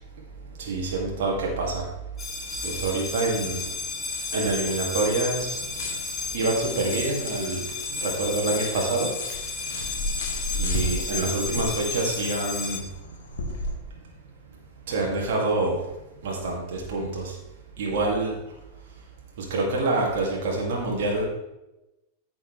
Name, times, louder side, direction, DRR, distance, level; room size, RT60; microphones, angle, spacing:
voice 1, 0.6-1.8 2.6-3.7 4.3-5.9 6.3-9.1 9.6-9.9 10.5-12.8 14.9-15.8 16.2-17.3 17.8-18.3 19.4-21.3, right 2 dB, 55° right, -2 dB, 2.2 m, -27 dB
sound 1, 2.2-12.8, left 4 dB, 20° left, 1.4 m, -33 dB
sound 2, 2.4-13.7, left 1 dB, 60° left, 1.6 m, -36 dB
13.5 x 6.1 x 3.2 m, 0.95 s
figure-of-eight pair, 90°, 0 cm